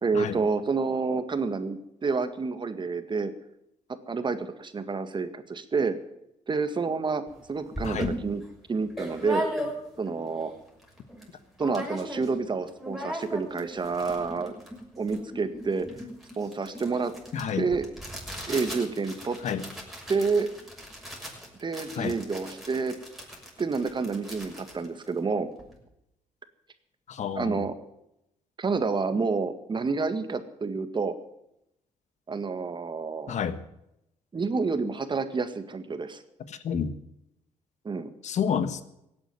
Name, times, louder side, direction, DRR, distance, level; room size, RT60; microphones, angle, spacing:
voice 1, 0.0-3.3 4.1-5.9 6.5-7.2 7.5-8.4 8.7-9.4 10.0-10.5 11.6-14.6 15.0-15.9 16.4-17.1 17.6-17.8 18.5-19.4 20.1-20.5 21.6-22.9 23.6-25.5 27.3-27.7 28.6-31.1 32.3-33.3 34.3-36.2 37.9-38.1, right 4 dB, 35° right, 10 dB, 1.8 m, -28 dB
sound 1, 7.3-7.4 7.7-10.1 10.5-10.6 10.8-11.3 11.6-12.4 12.7-25.7, equal, ahead, 6.4 m, -38 dB
voice 2, 17.3-17.6 19.4-19.6 22.0-22.2 27.1-27.6 33.3-33.6 36.5-36.9 38.2-38.8, left 7 dB, 60° left, 12 dB, 1.4 m, -29 dB
16.5 x 8.9 x 9.6 m, 0.84 s
supercardioid pair, 70°, 13 cm